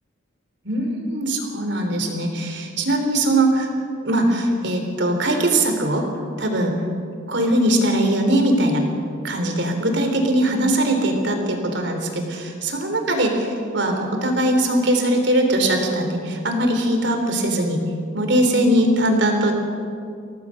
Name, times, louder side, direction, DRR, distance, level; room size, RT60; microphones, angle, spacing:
voice 1, 0.7-3.7 4.0-6.0 6.4-6.8 7.3-8.8 9.2-17.8 18.1-19.5, right 1 dB, 60° right, 4 dB, 3.5 m, -21 dB
24.5 x 17.5 x 6.5 m, 2.4 s
head